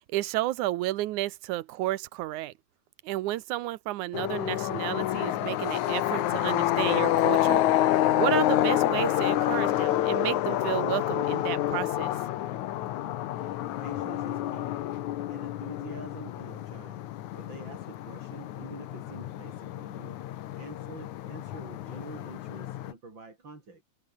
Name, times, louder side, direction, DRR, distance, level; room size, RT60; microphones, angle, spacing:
voice 1, 0.1-2.5 3.0-7.6 8.1-12.1, right 16 dB, 80° right, 2.3 m, -31 dB
sound 1, 4.1-22.9, left 13 dB, 75° left, 2.5 m, -28 dB
voice 2, 13.4-14.8 15.3-17.0 17.3-20.2 20.6-23.8, right 3 dB, 35° right, 5.5 m, -46 dB
omnidirectional pair, 3.4 m